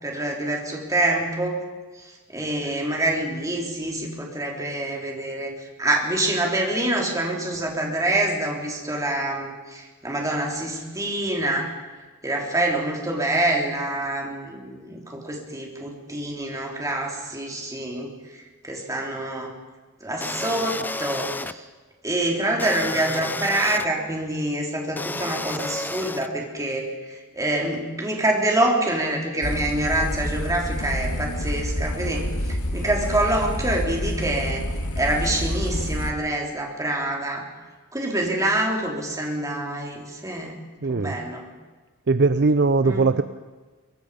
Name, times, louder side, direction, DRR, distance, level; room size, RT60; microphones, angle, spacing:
voice 1, 0.0-1.6 1.9-11.7 12.2-19.5 20.0-21.6 22.0-34.6 35.0-37.4 37.9-40.5 40.9-41.5 42.8-43.1, right 1 dB, 15° right, 0 dB, 4.2 m, -26 dB
sound 1, 20.2-21.5 22.6-23.9 25.0-26.3, left 2 dB, 10° left, 0.6 m, -31 dB
sound 2, 29.4-36.1, equal, 90° left, 2.2 m, -28 dB
voice 2, 40.8-41.1 42.1-43.2, right 3 dB, 50° right, 12 dB, 0.6 m, -20 dB
24.5 x 22.5 x 5.3 m, 1.4 s
head